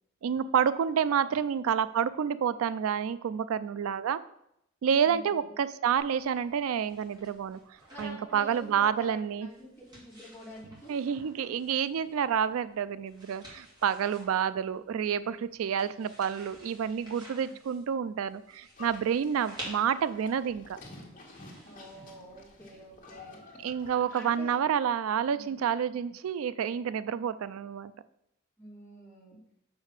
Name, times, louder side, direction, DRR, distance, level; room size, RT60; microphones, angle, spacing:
voice 1, 0.2-4.2 4.8-7.6 8.0-9.5 10.9-20.8 23.6-27.9, right 8 dB, 85° right, 15 dB, 0.3 m, -29 dB
voice 2, 5.0-5.5 7.9-10.9 17.4-17.5 21.6-23.4 23.9-24.5 25.4-25.5 28.6-29.4, equal, 10° left, -6 dB, 2.7 m, -48 dB
sound 1, 6.0-23.2, equal, 20° right, 2.6 m, -52 dB
Livestock farm animals working animals, 18.8-24.5, left 2 dB, 40° left, 1.6 m, -51 dB
6.4 x 5.1 x 6.6 m, 0.78 s
head